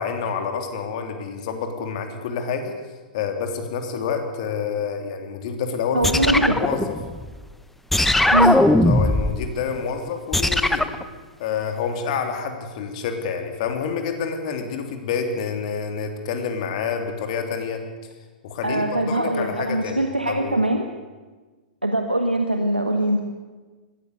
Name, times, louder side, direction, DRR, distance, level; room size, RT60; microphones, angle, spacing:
voice 1, 0.0-2.7 3.1-6.9 8.4-10.9 11.4-17.8 18.4-20.6, left 6 dB, 45° left, 5 dB, 3.2 m, -28 dB
voice 2, 5.9-6.6 8.3-8.6 18.6-20.8 21.8-23.2, right 1 dB, 90° right, 4 dB, 1.6 m, -22 dB
sound 1, 6.0-7.4 7.9-9.4 10.3-11.0, left 1 dB, 5° left, 0.8 m, -19 dB
21.0 x 16.0 x 8.2 m, 1.3 s
figure-of-eight pair, 105°, 5 cm